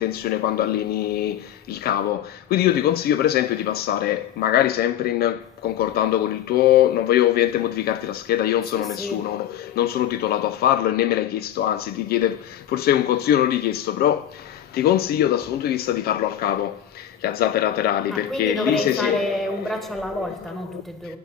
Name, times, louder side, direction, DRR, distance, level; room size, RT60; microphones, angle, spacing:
voice 1, 0.0-19.7 20.1-20.3 20.7-20.8, left 12 dB, 65° left, 0.4 m, -22 dB
voice 2, 8.7-9.2 18.1-21.2, equal, ahead, 1.4 m, -29 dB
15.5 x 8.4 x 4.2 m
cardioid pair, 110°, 17 cm